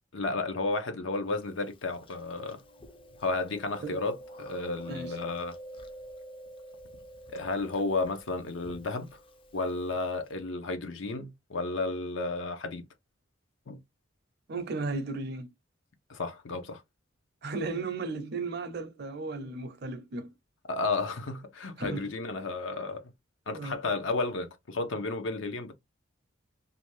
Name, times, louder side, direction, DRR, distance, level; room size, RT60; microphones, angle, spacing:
voice 1, 0.1-2.6 3.2-5.6 7.3-9.1 9.5-12.8 13.7-13.8 16.1-16.8 20.7-23.1 23.5-25.7, left 3 dB, 75° left, 0.6 m, -32 dB
Chewing mastication, 1.4-10.3, right 1 dB, 25° left, 0.4 m, -48 dB
voice 2, 14.5-15.5 17.4-20.3 21.8-22.1 23.5-23.8, right 3 dB, 55° right, 0.5 m, -35 dB
2.6 x 2.2 x 3.0 m
head